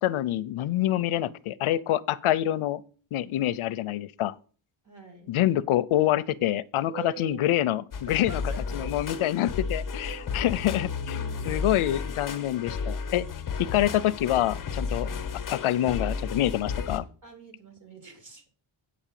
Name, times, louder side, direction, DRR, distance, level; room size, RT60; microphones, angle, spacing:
voice 1, 0.0-2.8 3.1-4.3 5.3-8.4 8.7-13.3 13.6-15.1 15.5-17.1, left 13 dB, 80° left, 0.6 m, -26 dB
voice 2, 4.8-5.4 6.9-7.4 8.1-8.9 10.0-10.7 11.0-11.7 13.5-13.7 15.1-15.2 17.2-18.5, right 6 dB, 35° right, 2.7 m, -45 dB
sound 1, 7.9-17.0, left 5 dB, 40° left, 1.0 m, -33 dB
8.6 x 5.0 x 7.4 m
wide cardioid pair, 170°, 49 cm